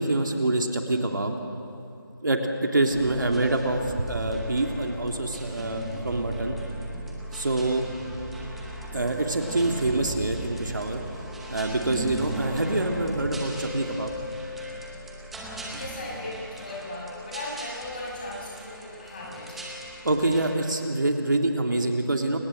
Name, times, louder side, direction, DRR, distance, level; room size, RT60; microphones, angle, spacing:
voice 1, 0.0-1.4 2.2-6.6 7.3-7.8 8.9-11.0 11.5-14.1 20.0-22.4, right 2 dB, 55° right, 2 dB, 3.0 m, -26 dB
sound 1, 2.9-20.6, right 1 dB, ahead, 0.9 m, -37 dB
voice 2, 15.7-19.9, left 2 dB, 25° left, -3 dB, 7.3 m, -37 dB
29.5 x 26.0 x 7.8 m, 2.5 s
figure-of-eight pair, 165°, 12 cm